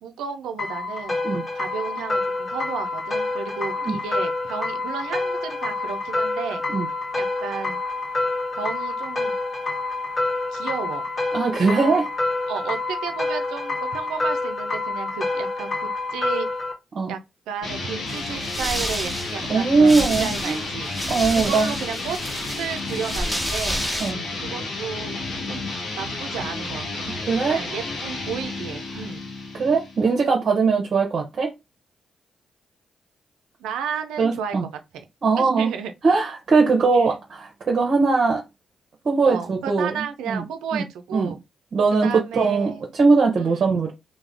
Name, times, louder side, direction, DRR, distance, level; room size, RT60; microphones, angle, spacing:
voice 1, 0.0-1.2 1.6-6.6 7.2-7.8 8.5-9.3 10.5-11.1 11.7-12.0 12.5-16.5 17.1-17.2 17.5-20.9 21.3-22.2 22.5-23.8 24.4-25.2 25.5-25.6 26.0-27.1 27.4-29.2 33.6-34.7 34.9-35.0 35.4-35.9 36.9-37.1 39.2-41.4 42.0-42.8 43.4-43.8, right 7 dB, 85° right, 0.4 m, -33 dB
sound 1, 0.6-16.7, left 2 dB, 45° left, 1.1 m, -27 dB
voice 2, 11.3-12.1 16.9-17.1 19.5-20.6 21.1-21.7 24.0-24.2 27.3-27.6 29.5-31.5 34.2-34.6 35.2-35.7 36.0-38.4 39.0-40.4 40.7-40.8 41.1-41.3 41.7-42.1 42.3-43.9, right 4 dB, 55° right, 0.7 m, -20 dB
sound 2, 17.6-30.1, left 2 dB, 75° left, 0.9 m, -31 dB
sound 3, 18.1-24.1, equal, ahead, 1.2 m, -30 dB
2.4 x 2.1 x 3.4 m
hypercardioid pair, 45°, 0 cm